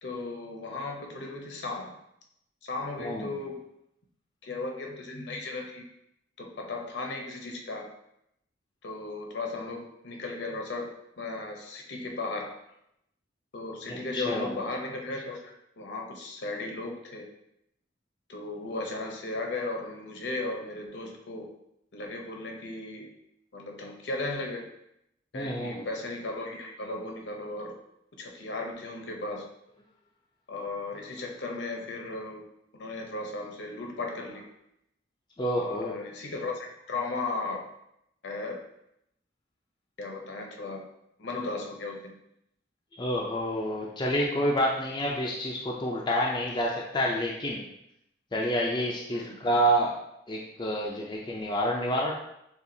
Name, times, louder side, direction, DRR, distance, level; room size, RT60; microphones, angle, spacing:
voice 1, 0.0-2.0 2.6-3.6 4.4-5.8 6.4-7.9 8.8-10.9 11.2-12.5 13.5-17.3 18.3-21.5 21.9-23.1 23.5-24.7 25.3-27.8 28.2-29.5 30.5-32.4 32.7-34.4 35.6-37.7 38.2-38.6 40.0-40.9 41.2-42.2 49.1-49.3, left 2 dB, 65° left, 1 dB, 0.7 m, -36 dB
voice 2, 3.0-3.3 13.9-14.5 25.3-25.8 35.4-35.9 43.0-47.6 48.3-49.9 50.3-52.1, equal, 25° left, -2 dB, 0.4 m, -28 dB
6.9 x 2.4 x 2.7 m, 0.79 s
head